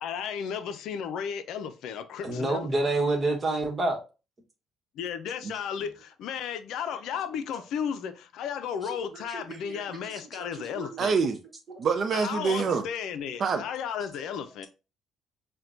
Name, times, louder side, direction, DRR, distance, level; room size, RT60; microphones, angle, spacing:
voice 1, 0.0-2.9 5.0-11.2 12.1-14.7, left 7 dB, 75° left, 0.4 m, -34 dB
voice 2, 2.2-4.0 9.3-9.8 10.3-10.5 10.7-10.9 11.7-11.8, right 2 dB, 30° right, 1.1 m, -28 dB
voice 3, 11.0-11.4 11.8-12.8 13.4-13.6, right 5 dB, 50° right, 0.5 m, -25 dB
5.7 x 2.2 x 2.5 m
supercardioid pair, 80°, 0 cm